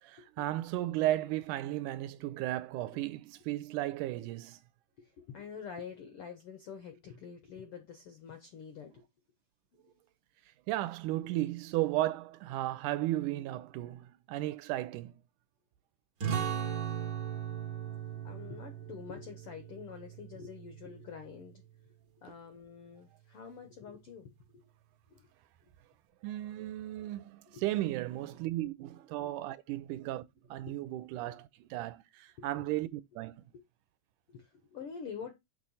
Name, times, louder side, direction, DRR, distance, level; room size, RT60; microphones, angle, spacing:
voice 1, 0.0-4.6 10.7-15.1 26.2-33.5, right 15 dB, 80° right, 2.0 m, -35 dB
voice 2, 5.0-9.0 18.2-21.6 22.2-24.6 25.1-25.3 27.5-27.6 28.6-28.7 30.7-30.8 31.2-31.4 32.4-32.5 34.3-35.3, left 6 dB, 75° left, 1.3 m, -47 dB
sound 1, 16.2-21.4, right 9 dB, 55° right, 1.2 m, -38 dB
6.7 x 3.1 x 5.4 m
omnidirectional pair, 3.7 m